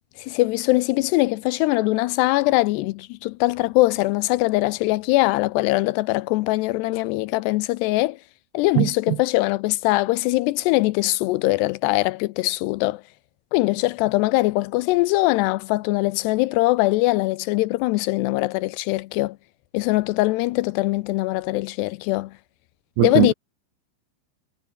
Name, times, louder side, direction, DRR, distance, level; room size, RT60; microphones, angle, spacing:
voice 1, 0.3-8.2 8.5-13.0 13.5-19.4 19.7-22.3 23.0-23.3, left 20 dB, 85° left, 2.4 m, -22 dB
voice 2, 8.8-9.2 23.0-23.3, right 22 dB, 85° right, 2.4 m, -20 dB
omnidirectional pair, 5.4 m